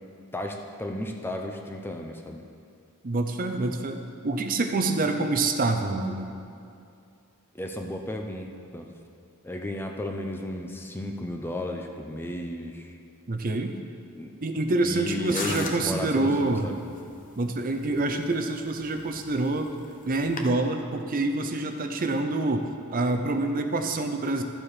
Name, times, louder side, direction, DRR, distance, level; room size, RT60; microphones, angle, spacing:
voice 1, 0.3-2.5 7.5-8.9 9.4-13.0 14.2-14.3 14.8-16.8, left 1 dB, 10° left, 2 dB, 0.6 m, -34 dB
voice 2, 3.0-6.3 13.3-13.8 14.4-16.7 17.4-19.7 20.0-24.4, right 2 dB, 40° right, 5 dB, 0.6 m, -26 dB
sound 1, 15.3-20.5, left 3 dB, 35° left, 0.9 m, -40 dB
13.0 x 7.4 x 4.9 m, 2.5 s
head